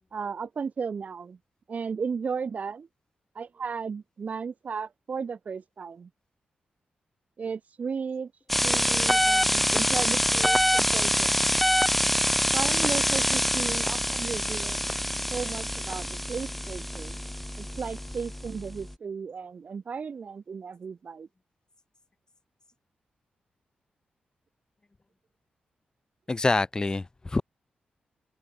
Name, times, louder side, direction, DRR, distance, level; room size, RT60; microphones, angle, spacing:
voice 1, 0.1-1.4 1.7-2.9 3.3-6.1 7.4-8.3 8.6-11.5 12.5-14.8 15.3-17.2 17.6-21.3, right 5 dB, 55° right, 4.1 m, -35 dB
sound 1, 8.5-18.9, equal, 5° left, 1.0 m, -25 dB
voice 2, 26.3-27.4, left 3 dB, 25° left, 1.2 m, -26 dB
open air
cardioid pair, 90°, 3 cm